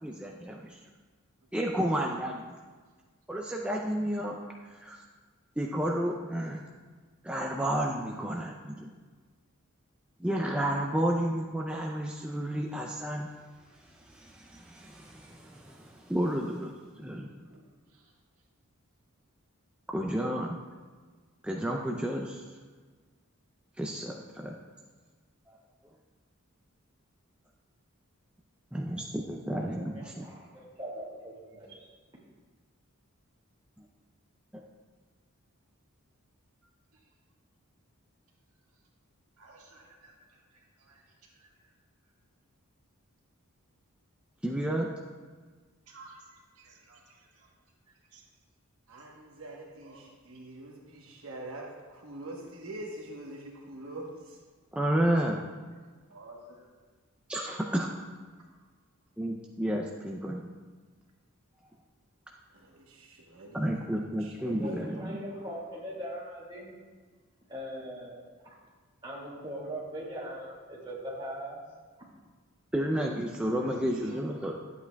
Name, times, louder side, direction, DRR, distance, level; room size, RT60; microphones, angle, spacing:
voice 1, 0.0-0.8 1.5-2.5 3.3-5.0 5.6-6.6 7.2-8.9 10.2-13.3 13.8-16.7 17.0-17.3 19.9-20.6 21.4-22.4 23.8-24.5 28.7-30.3 34.5-34.6 44.4-44.9 54.7-55.4 57.3-57.9 59.2-60.4 63.5-65.2 72.7-74.5, right 1 dB, 5° right, -1 dB, 0.4 m, -31 dB
voice 2, 17.4-18.1 36.9-37.1 39.4-41.7 45.9-47.5 47.9-48.2 48.9-49.0 49.8-50.0 56.1-56.7 58.4-58.5 73.6-74.3, right 2 dB, 85° right, -2 dB, 1.6 m, -54 dB
voice 3, 29.7-31.9 64.4-66.7 67.5-68.2 69.0-71.6, equal, 20° right, -6 dB, 2.2 m, -40 dB
voice 4, 48.9-54.4 62.5-63.7 64.2-64.8, right 1 dB, 65° right, -1 dB, 1.1 m, -44 dB
11.5 x 8.2 x 2.3 m, 1.4 s
head